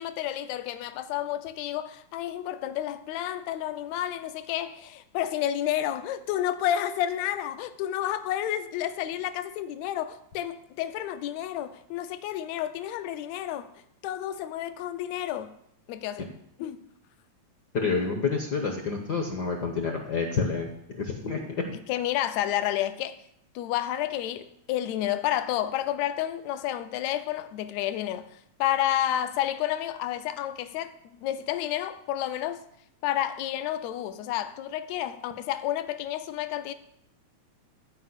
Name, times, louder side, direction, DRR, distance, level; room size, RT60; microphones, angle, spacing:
voice 1, 0.0-13.7 14.0-15.5 15.9-16.3 16.6-16.8 21.9-23.2 23.6-28.3 28.6-32.6 33.0-36.7, left 12 dB, 75° left, 1.9 m, -30 dB
voice 2, 17.7-20.7 21.0-21.7, left 4 dB, 55° left, 1.2 m, -28 dB
14.0 x 5.1 x 8.2 m
omnidirectional pair, 3.3 m